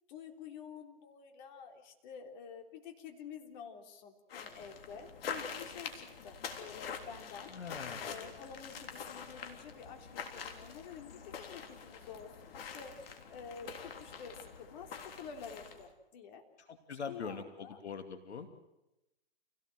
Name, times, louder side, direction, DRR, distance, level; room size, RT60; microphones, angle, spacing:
voice 1, 0.1-7.5 8.0-16.4 17.1-17.8, left 6 dB, 40° left, 4 dB, 3.8 m, -49 dB
sound 1, 4.3-15.9, left 6 dB, 60° left, 3.6 m, -45 dB
voice 2, 7.5-8.3 16.7-18.5, left 5 dB, 90° left, 7 dB, 2.7 m, -43 dB
28.5 x 18.0 x 7.9 m, 0.96 s
hypercardioid pair, 145°, 33 cm